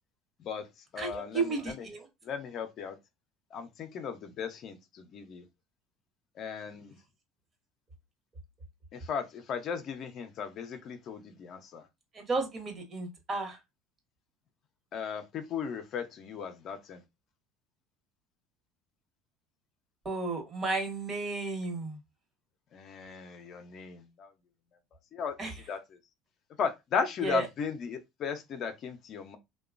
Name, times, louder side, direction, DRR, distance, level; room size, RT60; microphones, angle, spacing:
voice 1, 0.4-1.9 2.2-3.0 3.5-5.5 6.3-7.0 8.9-11.9 14.9-17.0 22.7-24.3 25.1-26.0 26.6-29.4, left 6 dB, 50° left, 0.5 m, -36 dB
voice 2, 1.0-2.1 12.1-13.6 20.0-22.0 25.4-25.5 27.2-27.4, right 3 dB, 35° right, 1.1 m, -33 dB
2.8 x 2.2 x 2.4 m
supercardioid pair, 100°, 0 cm